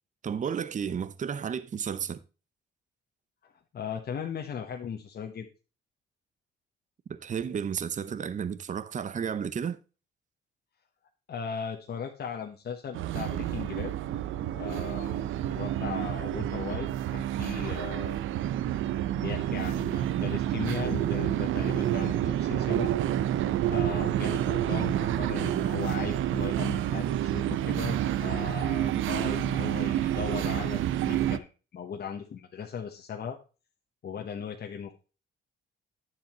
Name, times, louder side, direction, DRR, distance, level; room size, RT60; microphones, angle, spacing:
voice 1, 0.2-2.2 7.1-9.8, right 7 dB, 40° right, 0.8 m, -32 dB
voice 2, 3.4-5.5 11.3-13.9 14.6-15.2 15.5-16.9 17.1-18.2 19.1-22.9 23.7-33.4 34.0-34.9, left 7 dB, 55° left, 1.2 m, -37 dB
sound 1, 12.9-31.4, right 12 dB, 80° right, 0.7 m, -29 dB
9.5 x 7.5 x 3.0 m
cardioid pair, 90°, 20 cm